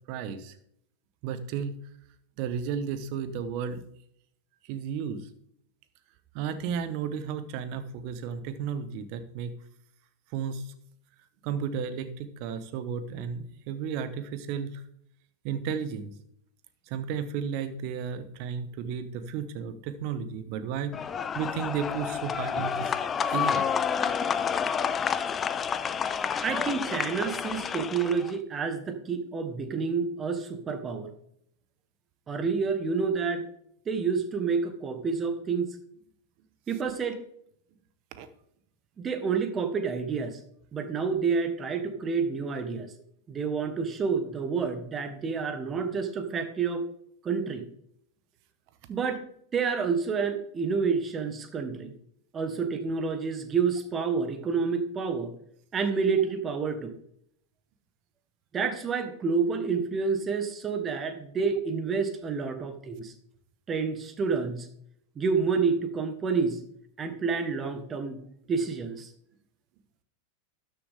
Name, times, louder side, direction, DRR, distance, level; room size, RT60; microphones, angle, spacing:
voice 1, 0.1-0.6 1.2-1.8 2.4-3.8 4.6-5.3 6.3-9.5 10.3-10.7 11.4-14.8 15.4-16.1 16.9-20.9 21.3-22.9 23.3-23.7 38.2-38.3, right 7 dB, 50° right, 11 dB, 1.2 m, -33 dB
sound 1, 20.9-28.3, left 7 dB, 25° left, 0.6 m, -29 dB
voice 2, 26.4-31.1 32.3-33.5 33.9-35.7 36.7-37.2 39.0-40.4 40.7-42.9 43.3-46.9 47.2-47.6 48.9-49.2 49.5-51.9 52.3-55.3 55.7-56.9 58.5-63.1 63.7-64.7 65.1-66.6 67.0-69.1, right 5 dB, 25° right, 8 dB, 1.4 m, -29 dB
12.5 x 6.9 x 3.7 m, 0.70 s
hypercardioid pair, 95°, 0 cm